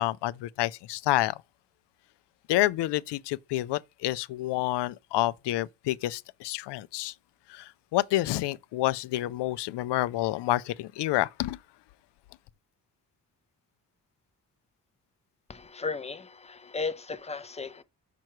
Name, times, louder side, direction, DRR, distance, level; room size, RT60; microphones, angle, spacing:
voice 1, 0.0-1.4 2.5-7.1 7.5-11.6, left 16 dB, 80° left, 0.5 m, -28 dB
voice 2, 15.5-17.8, left 4 dB, 15° left, 0.5 m, -35 dB
6.0 x 4.6 x 4.6 m
cardioid pair, 135°, 42 cm